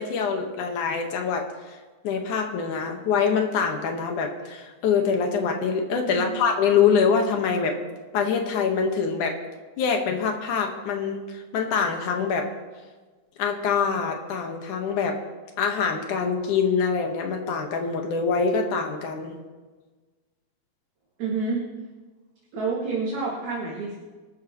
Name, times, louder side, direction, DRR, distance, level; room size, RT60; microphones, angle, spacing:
voice 1, 0.0-1.5 2.0-7.8 8.1-9.4 9.8-12.5 13.4-15.2 15.6-19.3, left 6 dB, 60° left, 3 dB, 2.8 m, -24 dB
voice 2, 6.1-6.4 21.2-21.6 22.5-23.9, right 4 dB, 55° right, -5 dB, 3.5 m, -28 dB
25.0 x 13.0 x 3.1 m, 1.3 s
omnidirectional pair, 4.2 m